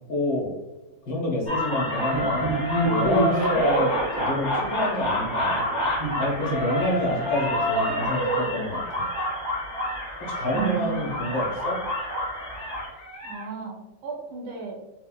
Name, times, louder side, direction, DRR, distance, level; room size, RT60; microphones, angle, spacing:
voice 1, 0.1-0.5 1.1-2.5 2.8-5.6 6.2-9.1 10.2-11.8, left 1 dB, 85° left, -3 dB, 1.6 m, -28 dB
sound 1, 1.5-13.4, equal, 45° left, 1.2 m, -27 dB
voice 2, 10.5-11.1 13.2-14.8, right 7 dB, 80° right, -1 dB, 1.4 m, -34 dB
4.3 x 2.1 x 2.2 m, 0.95 s
omnidirectional pair, 1.8 m